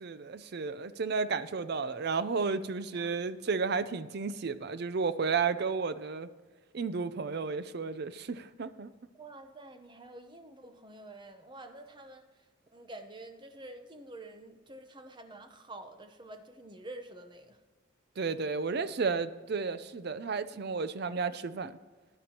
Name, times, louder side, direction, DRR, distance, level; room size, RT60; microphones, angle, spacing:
voice 1, 0.0-6.3 6.7-8.9 18.2-21.7, right 5 dB, 50° right, 14 dB, 0.5 m, -32 dB
voice 2, 9.1-12.4 12.7-17.6, right 2 dB, 25° right, 7 dB, 0.8 m, -48 dB
14.5 x 10.0 x 2.9 m, 1.4 s
head